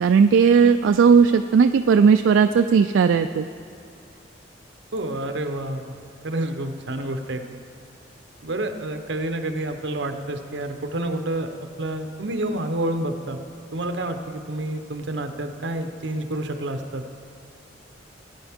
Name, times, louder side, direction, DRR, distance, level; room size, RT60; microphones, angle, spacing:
voice 1, 0.0-3.5, right 6 dB, 85° right, 8 dB, 0.3 m, -16 dB
voice 2, 4.9-5.9 6.2-7.4 8.4-11.5 11.8-13.4 13.7-17.0, right 1 dB, 70° right, 6 dB, 0.9 m, -28 dB
18.0 x 9.8 x 3.6 m, 2.7 s
head